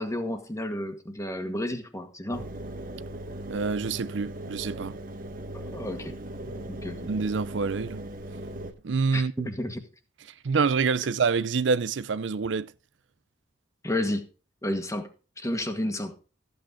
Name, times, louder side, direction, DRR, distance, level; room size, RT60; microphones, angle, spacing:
voice 1, 0.0-2.4 5.5-6.1 6.4-7.1 9.1-9.8 13.8-14.2 14.6-15.1 15.4-16.1, left 1 dB, 15° left, 1.9 m, -31 dB
Engine, 2.3-8.7, right 1 dB, 50° right, 1.3 m, -38 dB
voice 2, 3.5-4.9 7.1-8.0 8.8-9.5 10.4-12.7, right 5 dB, 75° right, 0.5 m, -26 dB
14.5 x 8.4 x 3.8 m
head